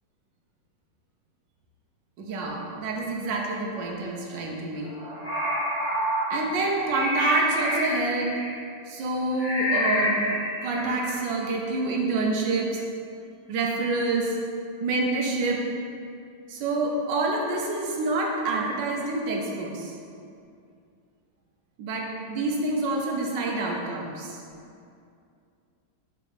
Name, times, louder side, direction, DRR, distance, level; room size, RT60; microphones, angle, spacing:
voice 1, 2.2-4.9 6.3-8.3 8.9-10.2 10.6-12.8 13.5-14.4 14.8-15.6 16.5-20.0 21.8-24.4, right 2 dB, 75° right, -1 dB, 1.4 m, -27 dB
sound 1, 4.9-8.6 9.4-11.2, equal, 10° left, 0.9 m, -28 dB
5.3 x 3.8 x 5.1 m, 2.4 s
omnidirectional pair, 2.1 m